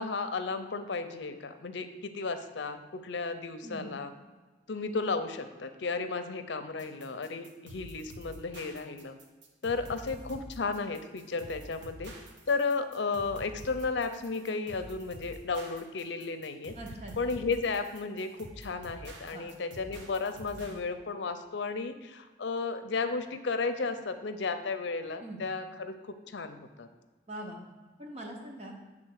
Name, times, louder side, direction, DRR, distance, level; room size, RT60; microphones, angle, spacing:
voice 1, 0.0-4.1 4.7-9.2 9.6-12.1 12.5-16.7 17.2-26.9, left 4 dB, 80° left, 9 dB, 0.6 m, -34 dB
sound 1, 6.8-20.8, equal, 80° right, 1.2 m, -47 dB
voice 2, 16.8-17.1 19.3-19.5 25.2-25.4 27.3-27.6 28.0-28.7, right 1 dB, 35° right, 1 dB, 1.1 m, -42 dB
7.7 x 3.6 x 6.4 m, 1.3 s
head